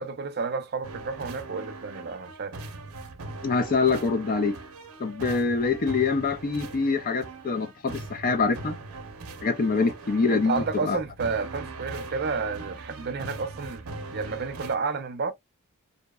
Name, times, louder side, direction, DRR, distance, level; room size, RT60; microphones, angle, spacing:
voice 1, 0.0-2.6 9.8-9.9 10.3-13.8 14.1-15.3, right 4 dB, 50° right, 0.5 m, -31 dB
sound 1, 0.8-14.8, right 3 dB, 90° right, 0.6 m, -40 dB
voice 2, 3.4-4.6 5.0-8.8 9.4-11.0, left 4 dB, 40° left, 0.4 m, -25 dB
2.7 x 2.1 x 2.2 m
head